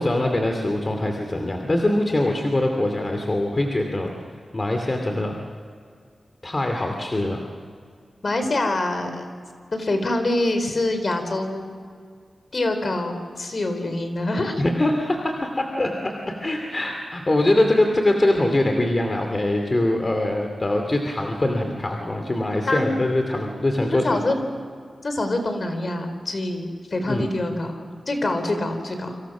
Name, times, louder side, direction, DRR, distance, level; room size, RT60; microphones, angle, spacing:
voice 1, 0.0-4.1 4.5-5.4 6.4-7.4 14.6-24.2 27.1-27.3, left 1 dB, 30° left, 3 dB, 2.6 m, -23 dB
voice 2, 8.2-9.3 9.7-11.7 12.5-14.6 22.7-22.9 23.9-24.4 25.0-29.2, left 2 dB, 45° left, 7 dB, 4.0 m, -25 dB
29.0 x 26.0 x 6.2 m, 2.1 s
wide cardioid pair, 115°, 0 cm